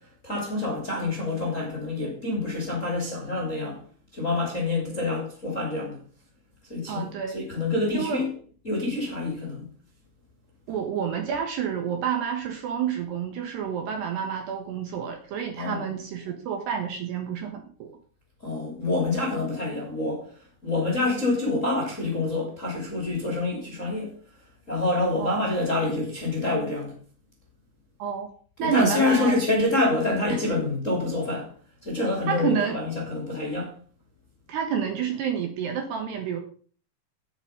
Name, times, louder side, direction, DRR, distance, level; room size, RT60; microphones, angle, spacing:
voice 1, 0.2-3.8 4.1-6.0 6.7-7.1 7.3-8.3 8.6-9.7 15.5-15.8 18.4-20.2 20.6-24.1 24.7-26.9 28.6-31.5 31.8-33.7, left 2 dB, 20° left, 2.3 m, -26 dB
voice 2, 6.9-7.4 7.9-8.3 10.7-17.9 25.2-25.5 28.0-28.3 28.6-29.4 32.3-32.8 34.5-36.4, right 7 dB, 65° right, 3.0 m, -29 dB
10.5 x 9.1 x 5.3 m
omnidirectional pair, 6.0 m